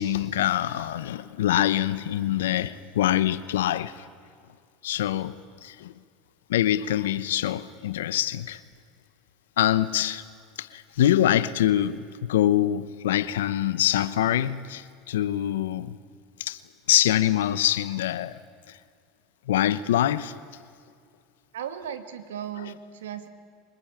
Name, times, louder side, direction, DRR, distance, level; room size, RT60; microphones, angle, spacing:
voice 1, 0.0-4.1 4.8-5.9 6.5-8.6 9.6-10.2 10.6-16.0 16.4-16.6 16.9-18.4 18.7-18.8 19.5-20.4, left 12 dB, 85° left, 0.9 m, -24 dB
voice 2, 21.5-23.3, right 9 dB, 85° right, 2.0 m, -36 dB
24.0 x 20.0 x 9.0 m
hypercardioid pair, 95°, 0 cm